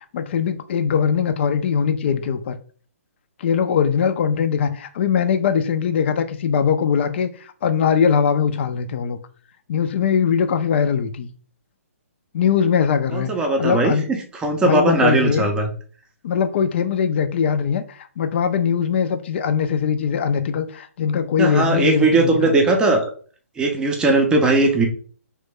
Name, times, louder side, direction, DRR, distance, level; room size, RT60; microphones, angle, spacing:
voice 1, 0.1-2.6 3.4-9.2 9.7-11.3 12.3-13.3 13.6-14.1 14.6-15.5 16.2-22.5, left 7 dB, 45° left, 0.4 m, -21 dB
voice 2, 13.1-15.7 21.4-23.1 23.6-24.9, right 2 dB, 10° right, 0.5 m, -19 dB
3.1 x 2.1 x 3.4 m
figure-of-eight pair, 135°, 8 cm